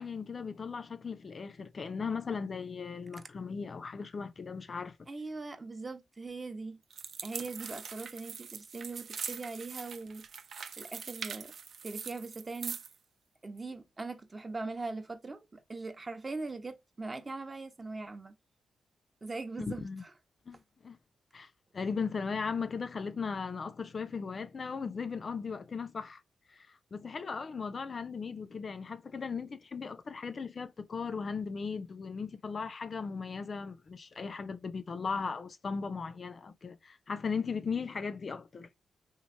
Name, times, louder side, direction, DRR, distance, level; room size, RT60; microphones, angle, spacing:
voice 1, 0.0-5.0 19.8-20.0 20.5-20.6 20.8-21.0 21.3-26.2 26.5-38.7, left 5 dB, 50° left, 0.3 m, -37 dB
voice 2, 5.1-6.8 7.2-10.3 10.8-11.5 11.8-12.8 13.4-18.3 19.2-20.1, right 3 dB, 30° right, 0.6 m, -41 dB
sound 1, 6.9-13.0, right 6 dB, 65° right, 0.3 m, -42 dB
3.0 x 2.5 x 2.5 m
cardioid pair, 70°, 0 cm